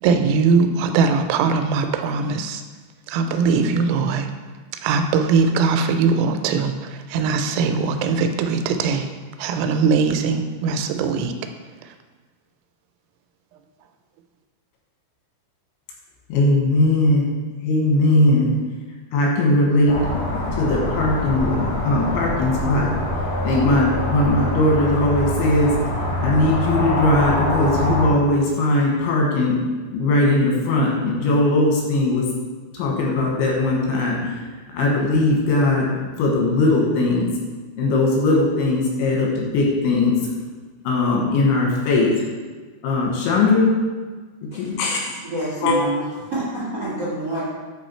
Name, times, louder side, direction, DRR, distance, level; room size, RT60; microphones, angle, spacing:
voice 1, 0.0-2.6 3.1-4.3 4.8-9.1 9.4-11.3 11.8-11.9, right 5 dB, 90° right, 7 dB, 3.0 m, -20 dB
voice 2, 16.3-17.3 17.6-18.5 19.1-20.0 20.3-22.9 23.4-25.7 26.2-29.6 29.9-32.3 32.7-34.4 34.7-35.9 36.2-37.3 37.8-40.2 40.9-42.1 42.8-43.7 44.6-45.2 45.6-45.8, left 2 dB, 90° left, -2 dB, 3.5 m, -19 dB
sound 1, 19.9-28.1, left 1 dB, 65° left, 2.9 m, -24 dB
voice 3, 45.2-47.4, right 1 dB, 60° right, -8 dB, 1.1 m, -27 dB
8.6 x 3.1 x 4.3 m, 1.4 s
omnidirectional pair, 5.3 m